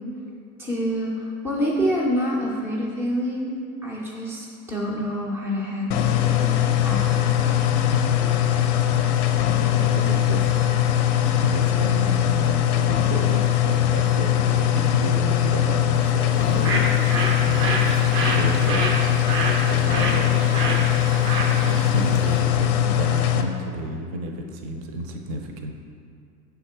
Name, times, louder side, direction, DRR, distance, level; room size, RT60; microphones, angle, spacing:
voice 1, 0.6-3.5 3.8-7.6, equal, 5° right, -3 dB, 0.3 m, -27 dB
sound 1, 5.9-23.4, left 11 dB, 50° left, 0.5 m, -21 dB
voice 2, 9.7-10.9 11.4-17.2 17.4-18.8 19.6-25.7, right 2 dB, 45° right, 3 dB, 0.6 m, -32 dB
Bird, 16.3-22.5, right 2 dB, 85° right, 1.1 m, -28 dB
5.8 x 3.6 x 4.4 m, 2.3 s
supercardioid pair, 130°, 46 cm